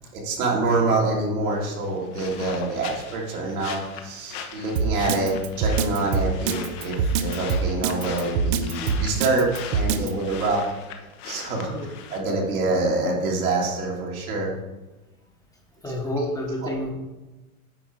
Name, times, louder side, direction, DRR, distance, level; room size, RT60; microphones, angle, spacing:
voice 1, 0.1-10.6 11.2-11.7 12.1-14.5 16.6-16.7, right 2 dB, 80° right, -3 dB, 2.8 m, -26 dB
sound 1, 1.5-12.2, left 7 dB, 50° left, 1.1 m, -40 dB
Drum kit, 4.8-10.1, right 6 dB, 50° right, 0.8 m, -23 dB
voice 2, 15.8-16.9, left 1 dB, 10° left, 0 dB, 1.1 m, -29 dB
9.5 x 3.9 x 4.7 m, 1.1 s
hypercardioid pair, 130°, 43 cm